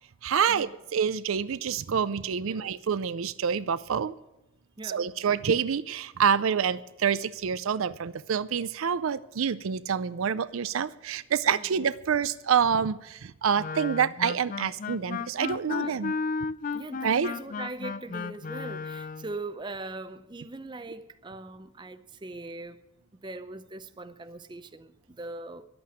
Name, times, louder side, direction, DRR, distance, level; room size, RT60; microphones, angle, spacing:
voice 1, 0.2-4.1 4.8-16.2 17.0-17.3, right 7 dB, 75° right, 0.5 m, -27 dB
Wind instrument woodwind instrument, 13.6-19.3, left 5 dB, 40° left, 0.3 m, -34 dB
voice 2, 15.7-16.0 16.7-22.8 23.2-25.7, right 2 dB, 20° right, 0.5 m, -41 dB
11.5 x 8.6 x 8.8 m
head